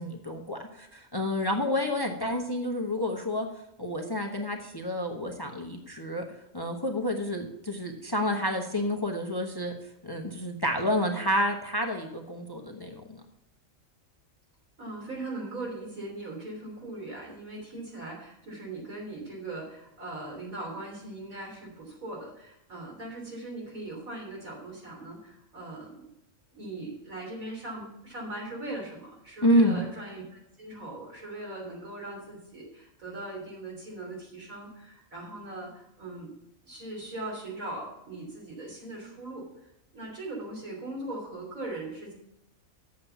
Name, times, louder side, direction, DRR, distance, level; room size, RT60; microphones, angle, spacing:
voice 1, 0.0-3.5 3.8-6.2 6.5-9.7 10.0-13.2 29.4-29.8, equal, 20° left, 3 dB, 0.9 m, -29 dB
voice 2, 14.8-26.1 26.5-36.3 36.6-42.1, right 2 dB, 80° right, -2 dB, 3.9 m, -40 dB
7.9 x 7.0 x 7.0 m, 0.85 s
omnidirectional pair, 1.4 m